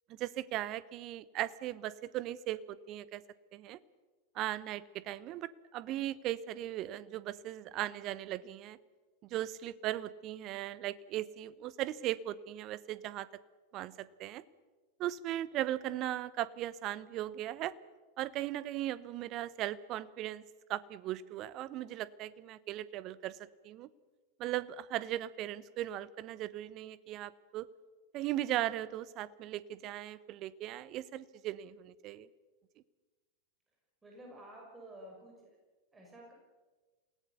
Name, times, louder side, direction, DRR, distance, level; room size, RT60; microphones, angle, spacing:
voice 1, 0.2-3.2 3.5-3.8 4.3-8.8 9.3-13.3 13.7-14.4 15.0-17.7 18.2-20.4 20.7-23.9 24.4-27.7 28.1-32.3, right 13 dB, 35° right, 18 dB, 0.9 m, -38 dB
voice 2, 34.0-35.6 35.9-36.3, right 1 dB, 15° right, 0 dB, 6.4 m, -51 dB
28.0 x 18.5 x 7.0 m, 1.3 s
figure-of-eight pair, 90°, 0 cm